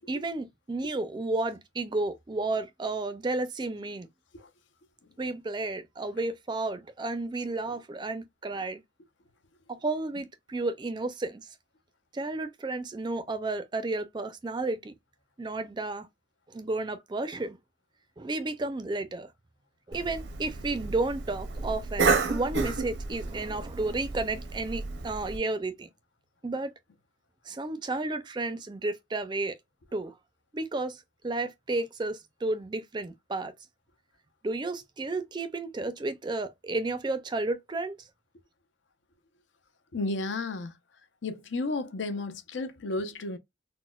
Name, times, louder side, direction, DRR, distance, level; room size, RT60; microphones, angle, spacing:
voice 1, 0.0-4.1 5.2-8.8 9.7-11.5 12.1-14.9 15.4-16.1 16.5-17.6 18.2-19.3 19.9-25.9 26.4-26.7 27.5-29.6 29.9-30.1 30.5-33.5 34.4-38.0, right 2 dB, 25° right, 0.4 m, -32 dB
Cough, 19.9-25.4, right 4 dB, 75° right, 0.6 m, -31 dB
voice 2, 39.9-40.7 41.2-43.4, left 2 dB, 75° left, 0.6 m, -33 dB
4.0 x 2.1 x 2.2 m
head